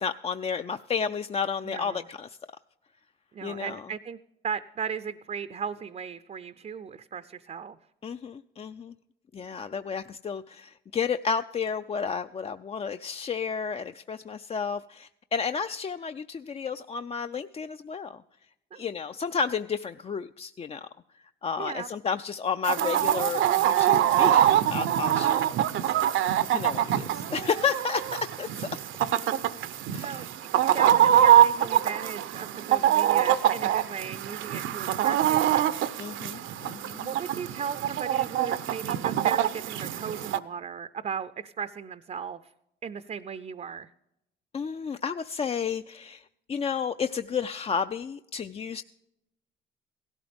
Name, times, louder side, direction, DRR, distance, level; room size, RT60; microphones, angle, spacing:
voice 1, 0.0-2.4 3.4-3.8 8.0-8.9 9.3-18.2 18.8-20.9 21.4-25.4 25.8-26.1 26.5-28.7 29.9-30.2 36.0-37.1 44.5-48.8, left 6 dB, 30° left, 10 dB, 0.4 m, -32 dB
voice 2, 1.6-2.0 3.3-4.2 4.4-7.8 18.7-18.9 21.6-21.9 30.0-36.4 36.9-42.5 42.8-43.9, right 7 dB, 35° right, 12 dB, 0.5 m, -37 dB
Chicken rooster, 22.6-40.4, right 11 dB, 80° right, 0.6 m, -24 dB
17.0 x 12.5 x 3.5 m, 0.85 s
cardioid pair, 90°, 20 cm